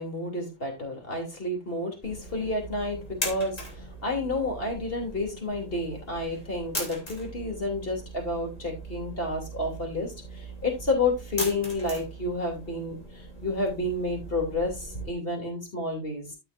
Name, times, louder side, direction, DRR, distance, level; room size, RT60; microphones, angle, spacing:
voice 1, 0.0-16.4, left 2 dB, 50° left, 1 dB, 3.2 m, -30 dB
sound 1, 2.0-15.1, right 1 dB, 35° left, 3.0 m, -40 dB
14.0 x 5.6 x 2.6 m, 0.25 s
omnidirectional pair, 1.2 m